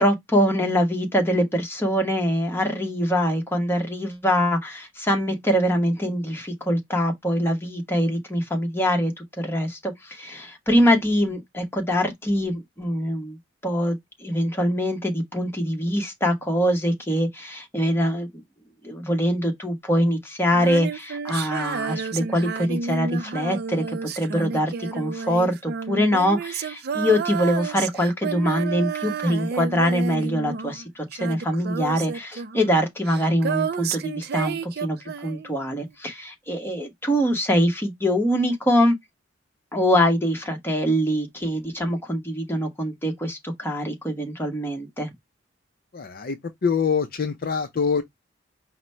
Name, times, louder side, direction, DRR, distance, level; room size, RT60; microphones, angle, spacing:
voice 1, 0.0-13.4 13.6-18.4 18.8-39.0 39.7-45.1, equal, 10° left, 1.1 m, -24 dB
Female singing, 20.5-30.9 31.1-35.6, right 6 dB, 55° right, 0.4 m, -31 dB
voice 2, 45.9-48.0, left 6 dB, 50° left, 0.5 m, -24 dB
5.0 x 2.1 x 4.3 m
head